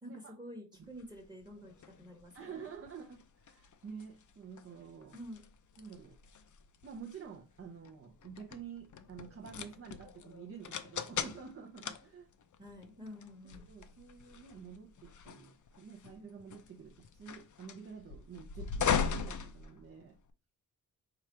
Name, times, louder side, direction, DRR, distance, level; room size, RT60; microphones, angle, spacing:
voice 1, 0.0-2.7 5.1-5.4 12.6-13.7, equal, 10° right, 2 dB, 1.1 m, -49 dB
sound 1, 0.9-20.3, left 7 dB, 50° left, 0.5 m, -41 dB
voice 2, 2.3-5.1 5.8-6.2 6.8-12.3 13.7-20.2, right 6 dB, 35° right, 0 dB, 0.6 m, -49 dB
4.8 x 2.4 x 4.3 m, 0.35 s
wide cardioid pair, 125°, 38 cm